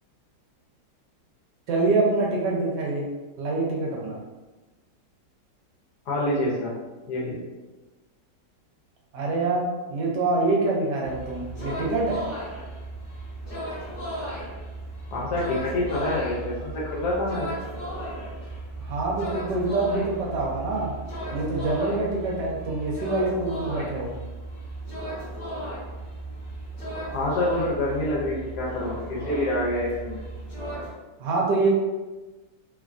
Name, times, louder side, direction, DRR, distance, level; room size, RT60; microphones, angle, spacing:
voice 1, 1.7-3.0 3.4-4.2 9.1-12.2 18.8-20.9 21.3-24.1 31.2-31.7, right 3 dB, 75° right, -3 dB, 1.3 m, -25 dB
voice 2, 6.1-6.7 7.1-7.4 15.1-17.6 27.1-30.2, left 1 dB, 70° left, -4 dB, 1.1 m, -27 dB
sound 1, 11.0-30.9, right 1 dB, 40° left, 0.7 m, -35 dB
3.1 x 2.2 x 2.4 m, 1.2 s
omnidirectional pair, 1.9 m